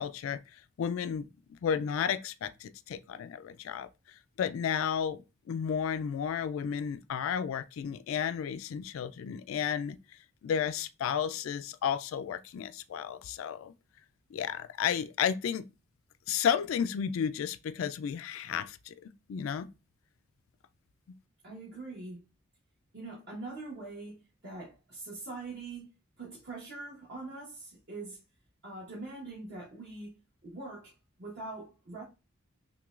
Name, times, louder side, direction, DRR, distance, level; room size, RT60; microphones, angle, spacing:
voice 1, 0.0-3.9 4.4-5.2 5.5-10.0 10.4-13.7 14.3-15.6 16.3-19.7, left 8 dB, 80° left, 0.3 m, -32 dB
voice 2, 21.4-22.2 22.9-25.9 26.2-28.2 28.6-30.2 30.4-30.9 31.2-32.0, right 3 dB, 60° right, 1.1 m, -43 dB
5.9 x 2.2 x 2.4 m
head